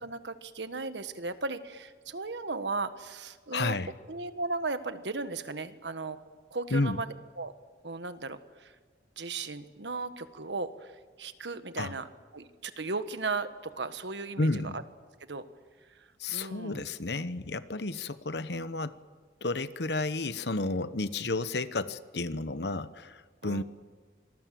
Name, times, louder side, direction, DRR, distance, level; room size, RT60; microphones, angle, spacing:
voice 1, 0.0-3.8 4.1-6.2 6.5-7.1 7.4-7.5 7.8-8.7 9.2-10.9 11.2-12.1 12.3-14.8 15.3-15.4 16.3-16.8 23.4-23.6, right 3 dB, 90° right, 11 dB, 1.5 m, -36 dB
voice 2, 3.5-3.9 6.7-7.0 11.8-11.9 14.4-14.8 16.2-19.0 19.4-23.6, left 2 dB, 75° left, 13 dB, 1.1 m, -31 dB
26.0 x 20.0 x 7.7 m, 1.5 s
head